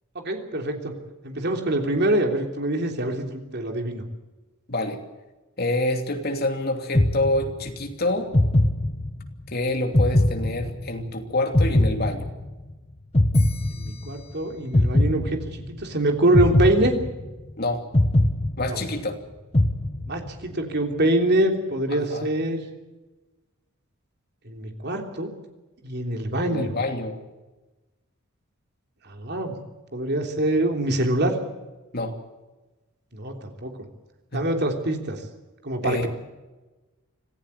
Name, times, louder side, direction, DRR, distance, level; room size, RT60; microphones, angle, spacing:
voice 1, 0.1-0.9 1.2-4.0 13.7-17.0 18.7-18.8 20.1-22.6 24.4-25.3 25.8-26.7 29.0-29.5 29.9-31.4 33.1-33.7 34.3-35.2 35.6-36.1, right 1 dB, 55° right, 4 dB, 3.3 m, -24 dB
voice 2, 4.7-5.0 5.6-8.3 9.5-12.3 17.6-17.9 18.6-19.2 21.9-22.3 26.4-27.2 31.9-32.1 34.3-34.4 35.8-36.1, left 2 dB, 45° left, 4 dB, 3.0 m, -27 dB
sound 1, 6.9-7.8 8.3-9.4 9.9-11.1 11.5-12.7 13.1-14.3 14.7-15.8 16.3-17.5 17.9-19.1 19.5-20.4, left 1 dB, 30° left, 1.2 m, -21 dB
26.0 x 15.0 x 8.2 m, 1.2 s
head